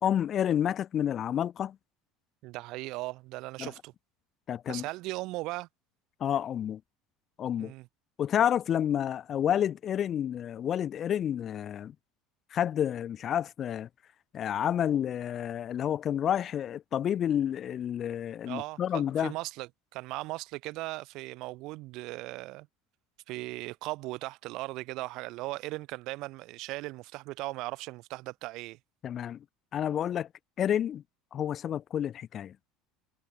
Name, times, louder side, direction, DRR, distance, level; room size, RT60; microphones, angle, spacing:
voice 1, 0.0-1.8 3.6-3.7 4.5-4.8 6.2-6.8 7.4-7.7 8.2-11.9 12.5-13.9 14.3-19.3 29.0-29.4 29.7-30.3 30.6-31.0 31.3-32.5, left 10 dB, 40° left, 1.0 m, -29 dB
voice 2, 2.4-3.9 4.7-5.7 7.6-7.9 18.5-22.7 23.3-28.8, right 20 dB, 60° right, 3.2 m, -38 dB
supercardioid pair, 125°, 0 cm